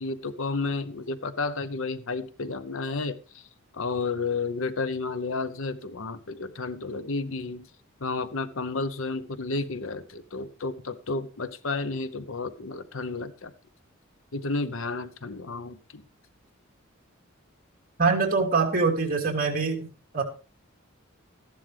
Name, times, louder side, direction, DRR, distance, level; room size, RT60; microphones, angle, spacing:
voice 1, 0.0-3.5 3.7-7.7 8.0-13.5 14.3-16.0, left 3 dB, 70° left, 13 dB, 0.9 m, -32 dB
voice 2, 18.0-19.8 20.1-20.2, right 4 dB, 45° right, 2 dB, 2.9 m, -23 dB
14.0 x 11.0 x 3.4 m, 0.35 s
head